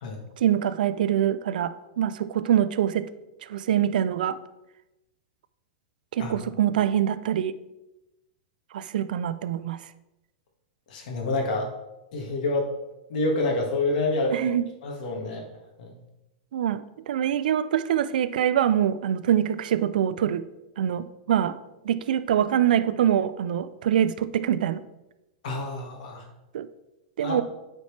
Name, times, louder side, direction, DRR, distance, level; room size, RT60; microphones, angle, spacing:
voice 1, 0.4-3.1 3.5-4.4 6.1-7.6 8.7-9.8 14.3-14.7 16.5-20.4 20.8-21.6 21.8-24.8 26.5-26.7 27.2-27.4, right 10 dB, 80° right, 14 dB, 0.4 m, -24 dB
voice 2, 10.9-11.7 12.1-12.7 13.1-14.4 14.8-15.5 15.8-16.0 25.4-26.2 27.2-27.4, left 2 dB, 65° left, 0 dB, 1.7 m, -27 dB
8.4 x 4.4 x 3.3 m, 0.96 s
supercardioid pair, 150°, 5 cm